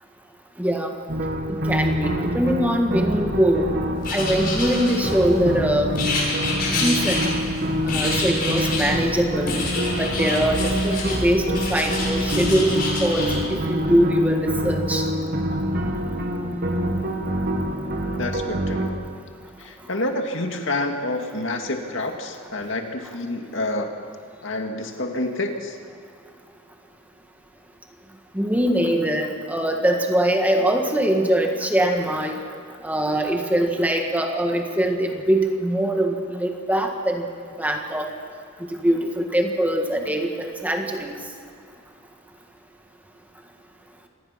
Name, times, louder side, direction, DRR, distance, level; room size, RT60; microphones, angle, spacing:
voice 1, 0.6-0.9 1.7-3.7 4.1-5.9 6.8-7.3 7.8-9.6 10.0-15.0 28.3-32.4 32.8-37.2 37.6-38.1 38.8-41.2, right 1 dB, 10° right, 3 dB, 1.7 m, -22 dB
sound 1, 1.1-18.9, equal, 50° right, 2.2 m, -26 dB
Writing, 4.0-5.4 5.9-7.6 7.9-8.9 9.5-11.2 11.5-13.4, left 3 dB, 45° left, 6.6 m, -27 dB
voice 2, 18.2-19.0 19.6-23.9 24.4-25.8, left 2 dB, 70° left, 4 dB, 2.2 m, -28 dB
26.0 x 19.5 x 5.9 m, 2.4 s
head